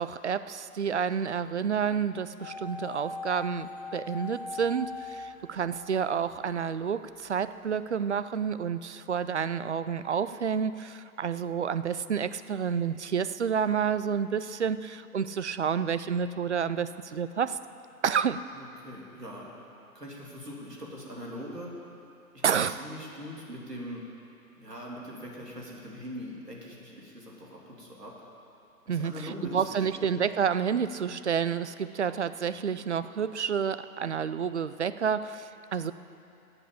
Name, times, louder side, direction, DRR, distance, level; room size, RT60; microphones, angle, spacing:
voice 1, 0.0-17.6 18.0-18.5 22.4-22.8 28.9-35.9, right 7 dB, 50° right, 13 dB, 0.5 m, -29 dB
sound 1, 2.4-6.5 6.8-6.9, left 3 dB, 10° left, 2.3 m, -40 dB
voice 2, 18.6-19.5 19.9-21.7 22.3-24.0 24.6-28.1 28.8-30.0, equal, 85° right, -3 dB, 3.1 m, -42 dB
13.0 x 8.0 x 8.5 m, 2.7 s
figure-of-eight pair, 135°, 47 cm